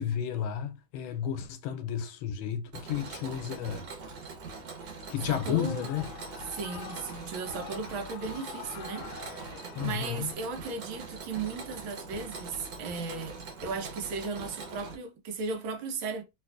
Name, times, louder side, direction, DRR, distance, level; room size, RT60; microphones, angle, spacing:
voice 1, 0.0-3.8 5.1-6.1 9.8-10.3, left 9 dB, 90° left, 1.4 m, -32 dB
Mechanisms, 2.7-14.9, right 4 dB, 65° right, 1.4 m, -42 dB
Shout / Cheering, 4.9-10.3, left 7 dB, 65° left, 1.0 m, -46 dB
voice 2, 5.2-5.9 6.5-9.5 9.8-16.2, right 4 dB, 85° right, 1.5 m, -36 dB
3.3 x 2.8 x 2.4 m
omnidirectional pair, 2.2 m